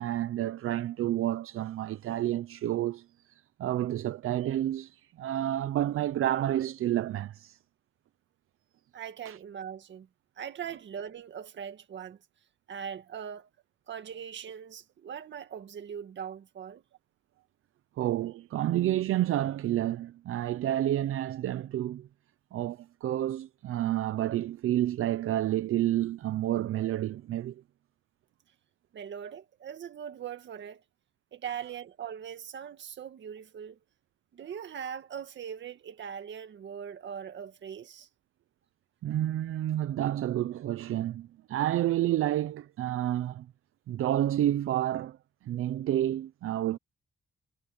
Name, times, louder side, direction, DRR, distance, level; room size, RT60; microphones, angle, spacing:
voice 1, 0.0-3.3 3.6-7.6 9.3-9.4 18.0-22.1 22.5-27.6 39.0-43.5 43.9-45.2 45.4-46.8, right 13 dB, 85° right, 0.6 m, -29 dB
voice 2, 8.9-10.1 10.4-12.2 12.7-13.5 13.9-16.8 28.9-30.8 31.3-33.8 34.3-38.1, right 8 dB, 60° right, 1.9 m, -41 dB
wide cardioid pair, 180°, 21 cm